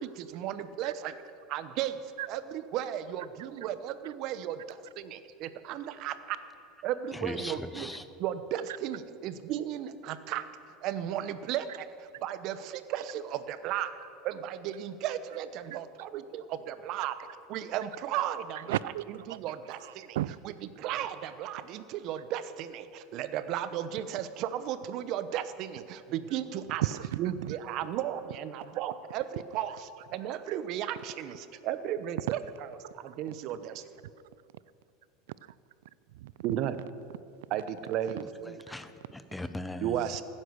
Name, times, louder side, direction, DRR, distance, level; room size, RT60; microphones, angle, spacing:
voice 1, 0.0-1.1 1.5-2.0 2.3-6.4 6.8-7.9 8.2-10.5 10.8-11.9 12.2-13.9 14.2-17.1 17.5-18.7 19.3-20.2 20.8-26.8 27.2-29.3 29.5-29.8 30.1-32.4 33.0-33.8 36.4-36.8 37.5-38.6 39.8-40.2, right 11 dB, 55° right, 12 dB, 0.9 m, -34 dB
voice 2, 7.1-8.1 38.0-40.2, left 1 dB, 5° left, 11 dB, 0.8 m, -40 dB
voice 3, 18.7-20.4 26.7-27.6 30.5-30.6 32.8-33.2 35.4-35.5 36.1-36.6, right 14 dB, 85° right, 20 dB, 0.3 m, -35 dB
15.5 x 9.9 x 6.6 m, 2.5 s
supercardioid pair, 120°, 0 cm